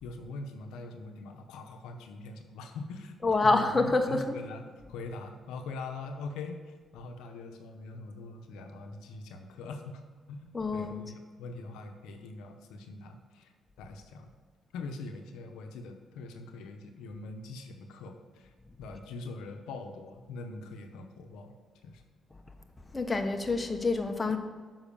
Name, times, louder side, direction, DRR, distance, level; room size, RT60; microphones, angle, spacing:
voice 1, 0.0-10.0 10.3-13.5 13.8-14.3 14.7-18.5 18.8-21.5 21.8-22.0, left 3 dB, 90° left, 5 dB, 0.7 m, -43 dB
voice 2, 3.2-4.3 10.5-10.9 22.9-24.4, left 3 dB, 25° left, 5 dB, 1.0 m, -27 dB
7.1 x 5.5 x 6.9 m, 1.5 s
cardioid pair, 70°, 0 cm